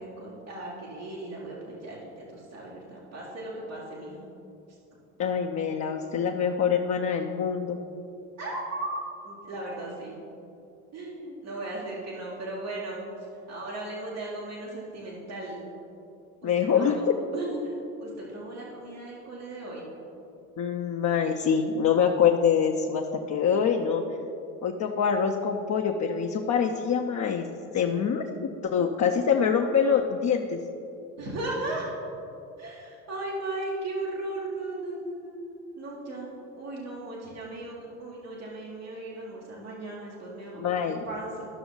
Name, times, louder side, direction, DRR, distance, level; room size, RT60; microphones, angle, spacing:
voice 1, 0.0-4.3 8.4-10.2 10.9-13.0 13.5-15.6 16.4-17.0 17.3-19.9 31.2-31.9 32.6-36.3 36.6-40.7 41.0-41.5, right 2 dB, 80° right, -9 dB, 2.0 m, -36 dB
voice 2, 5.2-7.8 16.4-17.1 20.6-24.0 24.6-27.4 27.7-30.6 40.6-41.0, left 7 dB, 40° left, 1 dB, 0.8 m, -25 dB
13.0 x 5.9 x 4.0 m, 2.7 s
hypercardioid pair, 60°, 42 cm